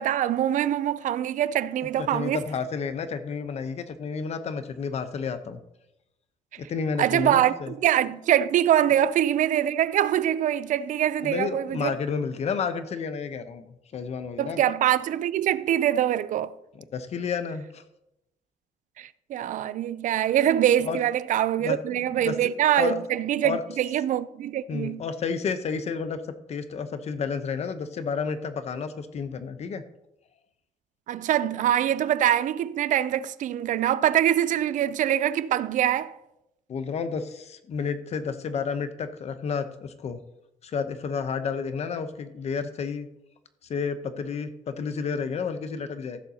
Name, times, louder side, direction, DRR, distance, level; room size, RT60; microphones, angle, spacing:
voice 1, 0.0-2.4 7.0-12.0 14.4-16.5 19.0-25.0 31.1-36.2, right 11 dB, 65° right, 0.4 m, -24 dB
voice 2, 2.0-5.6 6.6-7.7 11.2-14.6 16.7-17.8 20.8-21.0 21.6-22.5 22.8-23.0 23.4-23.6 24.7-26.2 26.5-29.8 36.7-40.2 40.6-43.1 43.7-46.2, left 5 dB, 50° left, 0.8 m, -31 dB
15.5 x 6.8 x 2.8 m
cardioid pair, 125°, 14 cm